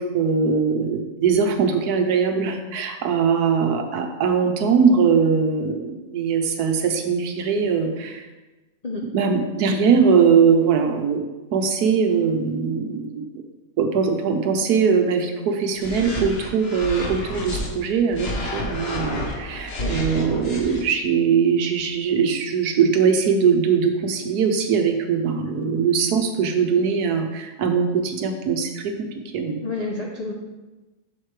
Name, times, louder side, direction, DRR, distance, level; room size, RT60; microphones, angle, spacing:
voice 1, 0.0-8.3 9.1-11.2 11.5-13.2 13.8-29.1 29.3-29.6, right 6 dB, 70° right, 5 dB, 1.2 m, -21 dB
sound 1, 15.8-17.7 18.1-20.8, left 1 dB, 40° left, 1.2 m, -30 dB
voice 2, 29.6-30.3, left 3 dB, 85° left, -1 dB, 0.3 m, -29 dB
7.7 x 6.6 x 3.2 m, 1.1 s
omnidirectional pair, 1.8 m